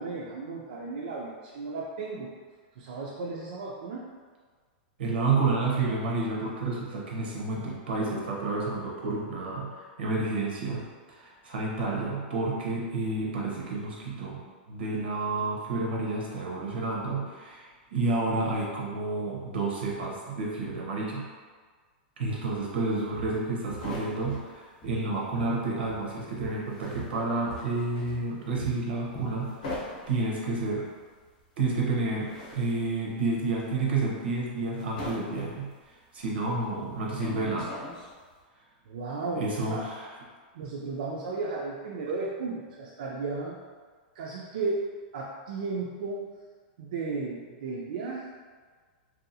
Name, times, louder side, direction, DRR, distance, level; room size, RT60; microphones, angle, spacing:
voice 1, 0.0-2.3 2.8-4.1 38.9-39.8 40.5-43.6 44.2-44.8 45.1-46.2 46.8-48.3, right 3 dB, 55° right, -4 dB, 0.3 m, -34 dB
voice 2, 5.0-14.4 14.7-21.3 22.2-29.8 30.1-30.9 31.6-35.7 36.1-37.7 39.3-40.1, right 3 dB, 85° right, -3 dB, 0.8 m, -30 dB
Walk footsteps, 22.6-22.8 23.1-24.5 24.8-26.1 26.4-29.9 30.2-30.5 30.9-31.0, right 3 dB, 15° left, 0.4 m, -45 dB
sound 1, 23.0-25.5 25.8-38.4, left 2 dB, 50° left, 0.7 m, -43 dB
2.7 x 2.3 x 2.6 m, 1.5 s
supercardioid pair, 175°, 5 cm